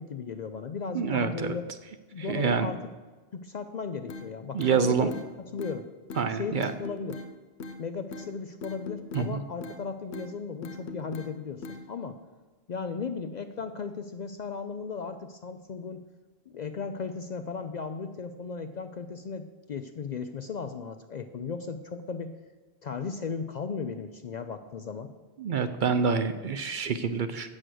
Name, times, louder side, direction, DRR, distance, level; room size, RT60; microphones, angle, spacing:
voice 1, 0.0-1.6 2.1-2.9 3.3-5.1 5.5-5.9 6.3-7.3 7.8-12.2 12.7-16.0 16.5-22.4 22.8-25.1, left 5 dB, 55° left, 9 dB, 0.5 m, -36 dB
voice 2, 0.9-1.6 2.2-2.7 4.5-5.1 6.2-6.7 9.1-9.4 25.4-27.5, right 6 dB, 60° right, 10 dB, 0.6 m, -27 dB
sound 1, 4.1-4.2 4.6-5.3 5.6-5.8 6.1-6.3 6.6-7.3 7.6-7.8 8.1-8.3 8.6-9.3 9.6-9.8 10.1-10.3 10.6-11.3 11.6-11.8, left 3 dB, 90° left, 1.0 m, -39 dB
8.1 x 6.5 x 7.6 m, 1.3 s
omnidirectional pair, 1.1 m